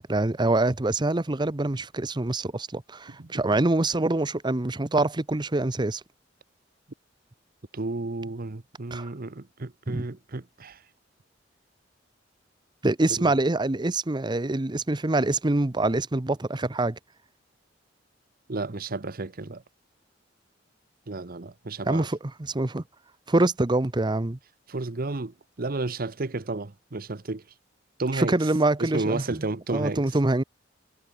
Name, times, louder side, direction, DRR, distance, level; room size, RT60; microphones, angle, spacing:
voice 1, 0.0-6.0 8.9-9.1 9.9-10.1 12.8-17.0 21.9-22.8 23.3-24.4 28.1-30.4, right 2 dB, 25° right, 0.8 m, -25 dB
voice 2, 7.7-10.8 13.2-13.3 18.5-19.6 21.1-22.1 24.7-27.4 28.0-28.4 28.8-30.0, right 3 dB, 50° right, 1.0 m, -32 dB
head